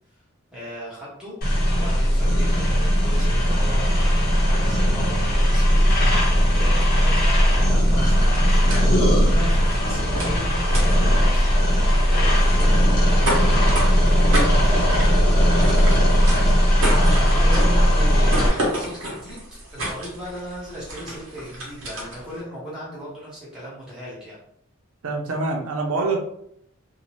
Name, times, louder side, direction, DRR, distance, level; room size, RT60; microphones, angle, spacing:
voice 1, 0.5-1.4 1.7-5.9 6.5-16.0 16.4-19.4 19.7-24.4, equal, 5° right, -8 dB, 0.8 m, -37 dB
sound 1, 1.4-18.5, equal, 45° left, 0.8 m, -18 dB
sound 2, 5.9-22.4, right 1 dB, 65° right, 0.9 m, -32 dB
voice 2, 25.0-26.2, right 3 dB, 85° right, 2 dB, 0.6 m, -25 dB
2.7 x 2.1 x 3.0 m, 0.71 s
head